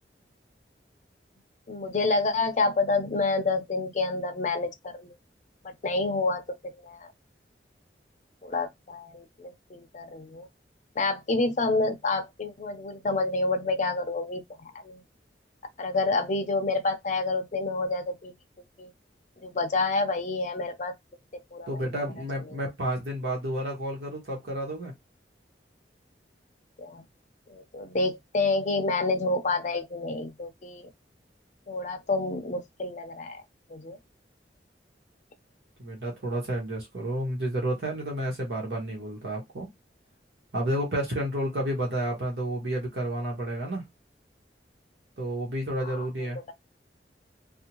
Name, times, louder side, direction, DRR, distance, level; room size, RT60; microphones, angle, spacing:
voice 1, 1.7-5.2 5.6-6.4 6.8-7.1 8.4-10.5 11.0-15.0 15.8-18.3 18.8-18.9 19.4-20.9 21.5-22.0 26.8-27.0 27.5-30.9 31.7-33.4 33.7-34.0 45.8-46.1, left 3 dB, 45° left, 0.5 m, -28 dB
voice 2, 21.7-24.9 35.8-39.7 40.5-43.8 45.2-46.4, right 1 dB, 75° right, 1.0 m, -31 dB
2.6 x 2.1 x 2.9 m
head